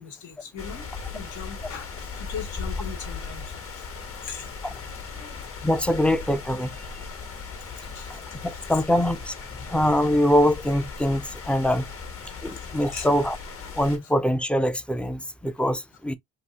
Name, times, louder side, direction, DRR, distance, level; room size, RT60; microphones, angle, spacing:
voice 1, 0.0-3.9 4.2-4.5 5.1-5.5 7.9-8.2 12.9-13.1, left 6 dB, 75° left, 1.1 m, -39 dB
sound 1, 0.6-14.0, left 5 dB, 45° left, 1.1 m, -37 dB
voice 2, 5.6-6.7 8.4-9.3 9.7-11.9 12.4-13.4 13.7-16.1, equal, 5° left, 0.3 m, -23 dB
2.8 x 2.3 x 3.2 m
cardioid pair, 90°, 30 cm